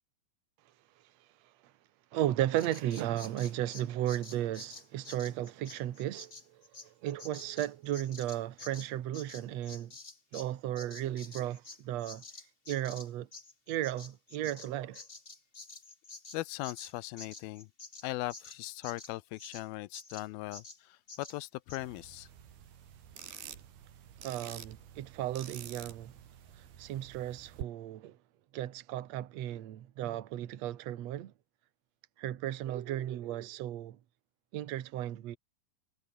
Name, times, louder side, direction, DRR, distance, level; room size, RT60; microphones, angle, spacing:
voice 1, 2.1-6.3 7.0-9.9 10.3-12.2 12.7-13.3 13.7-15.0 24.2-26.1 26.8-28.2 28.5-31.3 32.2-34.0 34.5-35.4, right 12 dB, 60° right, 2.0 m, -35 dB
Bird vocalization bird call bird song, 2.6-10.5 10.7-19.6 19.9-20.3 20.5-20.8 21.1-21.4 21.7-21.8, left 3 dB, 20° left, 1.6 m, -49 dB
voice 2, 16.3-17.7 18.0-22.3, left 19 dB, 85° left, 2.4 m, -39 dB
sound 1, 21.8-27.6, right 9 dB, 90° right, 4.7 m, -49 dB
omnidirectional pair, 4.4 m